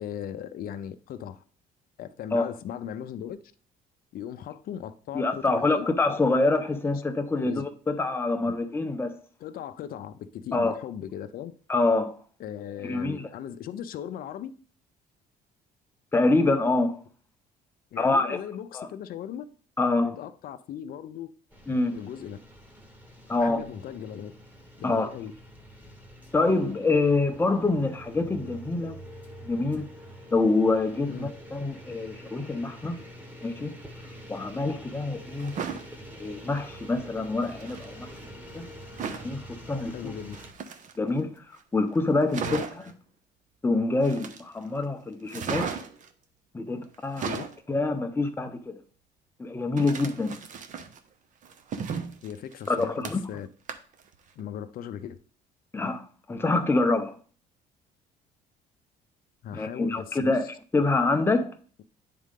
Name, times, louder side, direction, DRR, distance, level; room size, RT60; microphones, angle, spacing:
voice 1, 0.0-1.4 2.0-3.4 4.1-5.9 7.4-7.6 8.4-8.6 9.4-11.5 12.4-14.6 17.9-19.4 20.0-21.3 21.9-22.4 23.4-24.3 24.8-25.3 31.1-31.3 39.9-40.4 42.4-42.6 47.2-47.4 52.2-53.5 54.4-55.2 59.4-60.4, left 9 dB, 60° left, 0.6 m, -38 dB
voice 2, 5.1-9.2 10.5-10.8 11.7-12.1 12.8-13.2 16.1-16.9 18.0-18.4 18.7-18.9 19.8-20.1 21.7-22.0 23.3-23.6 24.8-25.1 26.3-29.0 29.4-29.9 30.3-33.0 33.4-33.8 34.3-35.6 36.2-38.1 38.5-38.6 39.2-40.1 41.0-41.3 41.7-42.6 43.6-45.7 46.5-47.3 47.7-48.8 49.4-50.4 52.7-53.2 55.7-56.0 56.3-57.2 59.5-61.5, left 3 dB, 15° left, 0.8 m, -26 dB
sound 1, 21.5-40.5, equal, 10° right, 1.4 m, -46 dB
sound 2, 35.4-35.9 37.4-37.9 39.0-39.3 40.2-41.2 41.6-41.7 42.0-42.1 42.3-42.9 44.0-44.7 45.3-46.1 46.9-47.6 49.8-51.0 51.4-53.4 53.7-54.0 54.4-54.5, right 6 dB, 50° right, 0.8 m, -35 dB
9.5 x 3.7 x 3.7 m
cardioid pair, 110°, 17 cm